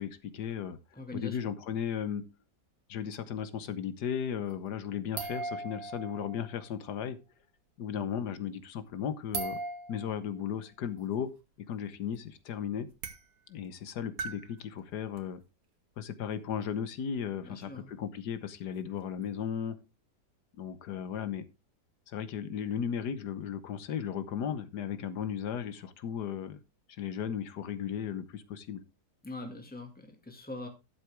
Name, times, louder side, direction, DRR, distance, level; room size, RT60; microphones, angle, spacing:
voice 1, 0.0-0.8 1.1-2.2 2.9-7.2 7.8-9.6 9.9-11.3 11.7-12.9 13.5-15.4 16.0-19.8 20.6-21.4 22.1-26.6 27.0-28.8, left 8 dB, 75° left, 13 dB, 1.5 m, -35 dB
voice 2, 0.9-1.4 17.4-17.9 29.2-30.7, left 2 dB, 5° left, 4 dB, 1.8 m, -42 dB
sound 1, 4.5-4.7 5.1-6.7 9.3-10.1 11.9-12.0 12.1-12.2 12.9-13.2 14.2-14.5 15.2-15.3 19.2-19.3, right 3 dB, 60° right, 1.6 m, -38 dB
12.0 x 7.7 x 3.4 m, 0.27 s
omnidirectional pair, 1.8 m